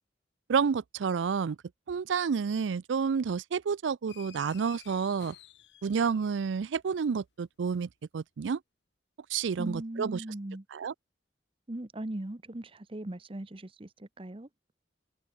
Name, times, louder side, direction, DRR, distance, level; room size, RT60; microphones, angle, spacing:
voice 1, 0.5-1.6 1.9-5.4 5.8-8.6 9.3-10.2 10.7-10.9, right 6 dB, 85° right, 0.4 m, -30 dB
sound 1, 4.1-6.6, left 10 dB, 70° left, 1.3 m, -53 dB
voice 2, 9.6-10.6 11.7-14.5, right 1 dB, 30° right, 0.9 m, -39 dB
head